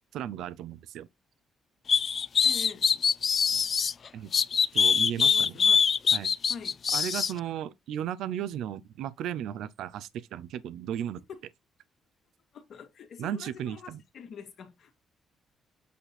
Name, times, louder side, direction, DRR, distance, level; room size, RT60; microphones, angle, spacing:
voice 1, 0.1-1.1 4.1-4.3 4.7-5.5 6.1-6.3 6.9-11.2 13.2-14.0, right 10 dB, 80° right, 0.6 m, -35 dB
sound 1, 1.9-3.9 4.3-7.3, left 6 dB, 45° left, 0.4 m, -23 dB
voice 2, 2.4-2.9 5.2-5.9 6.5-6.8 11.3-11.5 12.5-15.0, left 6 dB, 65° left, 1.9 m, -45 dB
8.4 x 4.1 x 4.2 m
cardioid pair, 90°, 0 cm